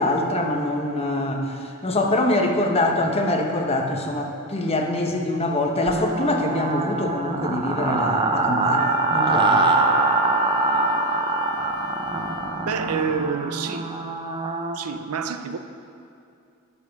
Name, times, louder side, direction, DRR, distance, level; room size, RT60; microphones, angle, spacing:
voice 1, 0.0-9.7, left 1 dB, 30° left, 2 dB, 0.9 m, -24 dB
sound 1, 5.9-14.8, right 3 dB, 20° right, 0.6 m, -23 dB
Wind instrument woodwind instrument, 8.8-12.7, left 8 dB, 70° left, 0.6 m, -36 dB
voice 2, 12.6-14.0 14.7-15.6, right 6 dB, 90° right, 9 dB, 0.5 m, -28 dB
11.0 x 5.4 x 5.8 m, 2.6 s
head